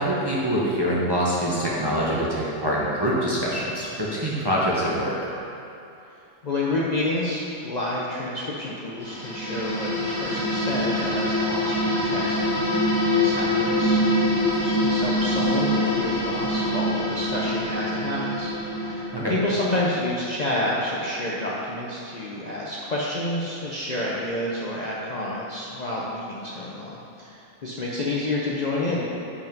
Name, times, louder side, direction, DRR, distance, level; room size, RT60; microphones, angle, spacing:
voice 1, 0.0-5.1 19.1-19.4, equal, 20° right, -7 dB, 0.8 m, -24 dB
voice 2, 6.1-12.8 13.1-14.3 14.6-29.0, left 1 dB, 45° left, -6 dB, 0.6 m, -29 dB
sound 1, 9.0-19.4, left 1 dB, 25° left, 1.0 m, -24 dB
5.3 x 5.1 x 5.3 m, 2.8 s
omnidirectional pair, 1.4 m